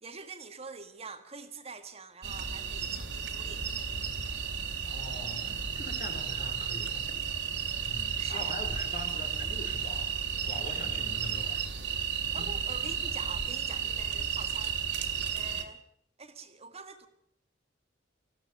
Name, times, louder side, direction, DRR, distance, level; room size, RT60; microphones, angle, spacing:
voice 1, 0.0-3.7 8.2-8.6 12.3-14.7 15.3-15.8 16.2-17.1, right 4 dB, 35° right, 1.6 m, -45 dB
sound 1, 2.2-15.6, right 7 dB, 75° right, 2.6 m, -33 dB
voice 2, 4.9-7.0 7.6-10.1 10.4-11.6 12.4-12.6, left 1 dB, 45° left, 3.5 m, -43 dB
19.5 x 14.5 x 9.2 m
head